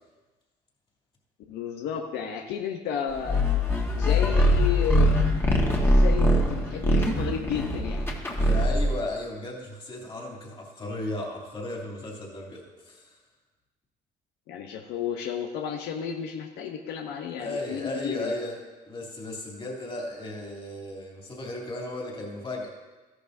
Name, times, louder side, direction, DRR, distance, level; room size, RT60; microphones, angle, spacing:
voice 1, 1.5-3.4 3.9-5.2 5.7-8.1 14.5-18.3, left 8 dB, 85° left, 3 dB, 0.8 m, -32 dB
sound 1, 3.2-9.0, left 1 dB, 15° left, 1.5 m, -22 dB
voice 2, 8.4-13.2 17.4-22.7, left 1 dB, 30° left, -2 dB, 2.8 m, -35 dB
13.5 x 11.0 x 2.7 m, 1.2 s
cardioid pair, 110°, 17 cm